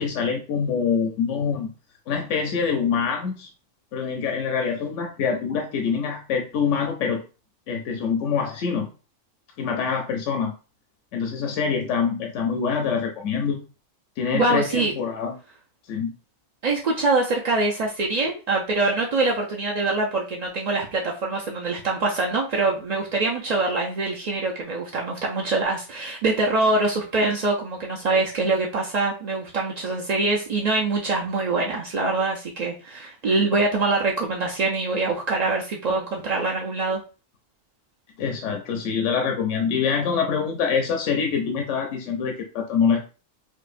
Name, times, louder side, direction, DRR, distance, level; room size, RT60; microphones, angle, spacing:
voice 1, 0.0-1.7 2.1-3.5 3.9-7.2 7.7-8.9 9.6-10.5 11.1-13.6 14.2-15.3 15.9-16.1 38.2-43.0, left 6 dB, 70° left, 3 dB, 0.9 m, -25 dB
voice 2, 14.3-14.9 16.6-37.0, right 3 dB, 65° right, -2 dB, 0.4 m, -24 dB
4.6 x 2.1 x 2.5 m, 0.34 s
omnidirectional pair, 1.3 m